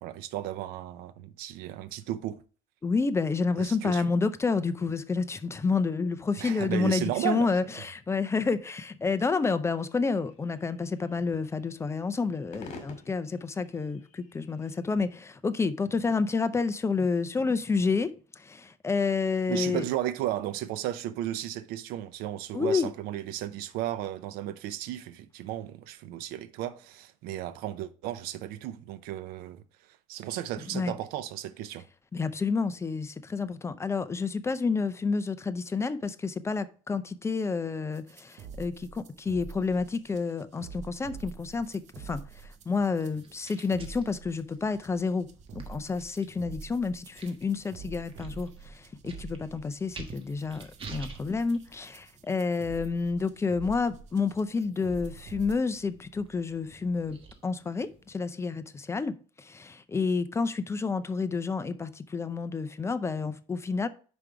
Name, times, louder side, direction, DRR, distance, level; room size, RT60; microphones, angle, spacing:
voice 1, 0.0-2.4 3.6-4.1 6.4-7.5 19.5-31.8, right 13 dB, 85° right, 0.6 m, -34 dB
voice 2, 2.8-19.8 22.5-22.9 30.7-30.9 32.1-57.2 57.4-63.9, left 4 dB, 20° left, 0.5 m, -29 dB
sound 1, 9.7-15.1, left 3 dB, 55° left, 2.0 m, -51 dB
sound 2, 37.9-55.5, right 5 dB, 50° right, 0.7 m, -46 dB
sound 3, 41.2-58.1, right 4 dB, 35° right, 1.4 m, -52 dB
5.2 x 4.9 x 4.6 m
cardioid pair, 125°, 15 cm